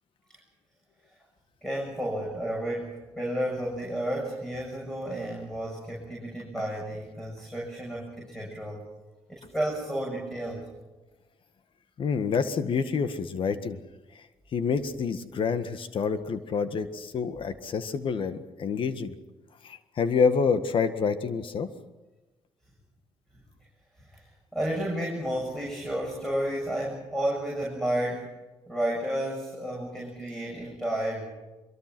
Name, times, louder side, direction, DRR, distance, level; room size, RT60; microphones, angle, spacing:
voice 1, 1.6-8.8 9.3-10.7 24.0-24.3 24.5-28.3 28.7-31.3, right 1 dB, 5° left, -1 dB, 7.5 m, -32 dB
voice 2, 12.0-13.8 14.5-19.1 19.6-21.7, left 5 dB, 55° left, 11 dB, 1.7 m, -27 dB
24.0 x 23.0 x 6.2 m, 1.1 s
supercardioid pair, 75°, 10 cm